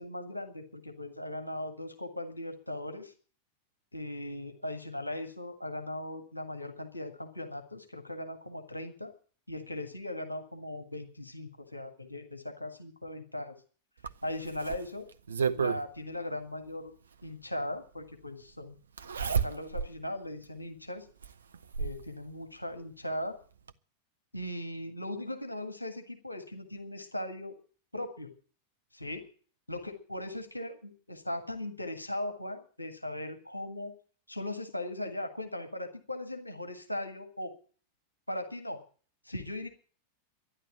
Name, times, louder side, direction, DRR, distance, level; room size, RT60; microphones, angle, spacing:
voice 1, 0.0-3.1 3.9-9.1 9.5-13.6 14.2-15.0 15.5-16.9 17.2-18.8 19.3-21.1 21.8-23.4 24.3-27.5 27.9-28.3 28.9-29.2 29.7-33.9 34.3-37.5 38.3-38.8 39.3-39.7, left 1 dB, 85° left, 6 dB, 1.7 m, -38 dB
Zipper (clothing), 14.0-15.8 17.2-17.3 19.0-19.9 20.4-20.5 21.2-22.0 23.2-23.3 23.7-23.8, right 6 dB, 70° right, 0.7 m, -31 dB
12.5 x 10.5 x 8.8 m, 0.42 s
figure-of-eight pair, 90°, 0 cm